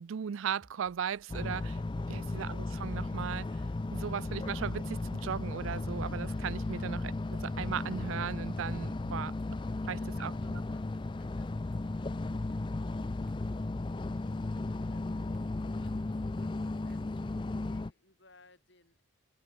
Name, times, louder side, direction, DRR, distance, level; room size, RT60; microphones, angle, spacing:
voice 1, 0.0-1.8 2.1-3.6 3.9-9.3 9.9-10.3, right 7 dB, 70° right, 0.4 m, -37 dB
sound 1, 0.6-1.3 2.1-3.6 4.2-5.4 6.3-7.6 8.1-9.5 10.4-11.8 12.5-13.7 14.6-17.0, right 1 dB, 40° right, 3.4 m, -64 dB
sound 2, 1.3-17.9, left 2 dB, 25° left, 0.4 m, -35 dB
voice 2, 9.7-13.6 14.0-19.1, left 3 dB, 55° left, 7.5 m, -64 dB
head